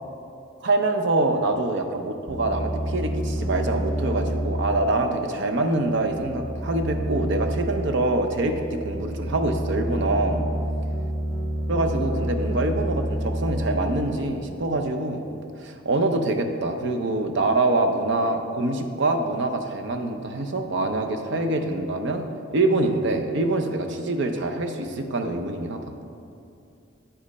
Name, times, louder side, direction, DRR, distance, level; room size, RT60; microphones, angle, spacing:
voice 1, 0.6-10.4 11.7-22.3 22.5-25.9, right 2 dB, 60° right, 5 dB, 0.6 m, -25 dB
sound 1, 2.3-14.8, equal, 15° left, 1.3 m, -29 dB
8.8 x 5.2 x 4.1 m, 2.6 s
head